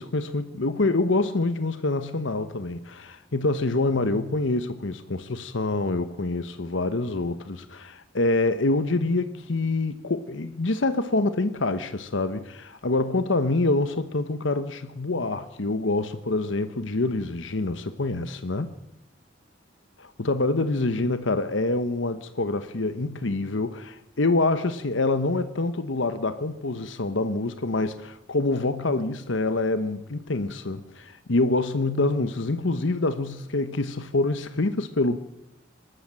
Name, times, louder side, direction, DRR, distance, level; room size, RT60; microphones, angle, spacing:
voice 1, 0.0-18.7 20.0-35.2, left 2 dB, 75° left, 1.0 m, -26 dB
23.0 x 13.0 x 8.9 m
head